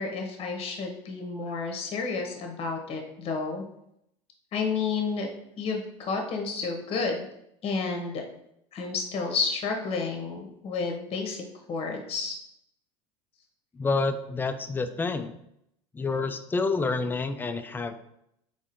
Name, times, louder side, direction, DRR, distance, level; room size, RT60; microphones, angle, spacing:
voice 1, 0.0-3.6 4.5-5.3 5.6-7.3 7.6-8.2 8.7-12.4, left 4 dB, 40° left, 2 dB, 0.9 m, -31 dB
voice 2, 13.8-15.3 15.9-18.0, left 3 dB, 15° left, 10 dB, 0.3 m, -28 dB
4.2 x 3.6 x 2.6 m, 0.77 s
supercardioid pair, 100°, 15 cm